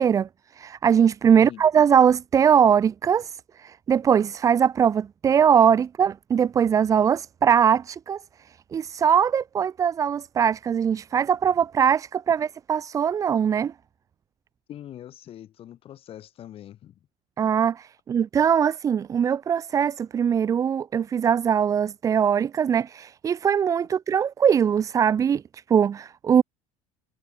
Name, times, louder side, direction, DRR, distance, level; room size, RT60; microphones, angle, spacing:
voice 1, 0.0-8.2 8.5-13.7 17.4-26.4, right 8 dB, 20° right, 0.5 m, -21 dB
voice 2, 14.7-16.9, left 11 dB, 40° left, 6.5 m, -42 dB
cardioid pair, 150°, 15 cm